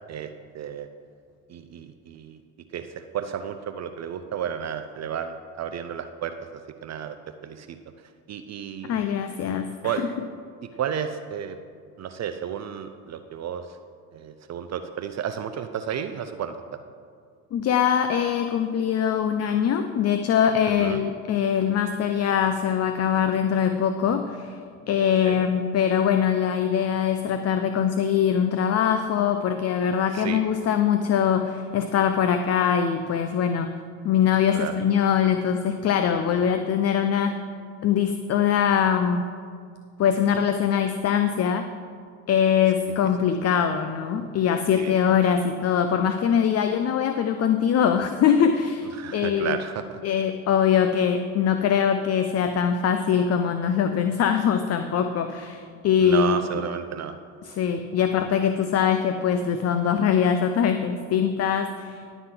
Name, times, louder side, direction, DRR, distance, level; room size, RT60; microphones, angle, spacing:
voice 1, 0.1-0.9 1.5-2.4 2.7-6.3 6.8-7.2 7.4-7.8 8.3-9.1 9.8-10.0 10.6-11.6 12.0-13.7 14.1-16.6 20.8-21.0 25.2-25.4 30.1-30.4 34.5-34.7 44.7-44.9 49.0-50.0 56.0-57.1, right 8 dB, 40° right, 8 dB, 0.5 m, -32 dB
voice 2, 8.8-10.1 17.5-24.6 24.9-33.8 34.0-37.4 37.8-39.3 40.0-41.7 42.3-49.6 50.0-56.4 57.4-62.2, left 8 dB, 35° left, 8 dB, 0.6 m, -22 dB
11.0 x 4.0 x 7.6 m, 2.1 s
hypercardioid pair, 70°, 43 cm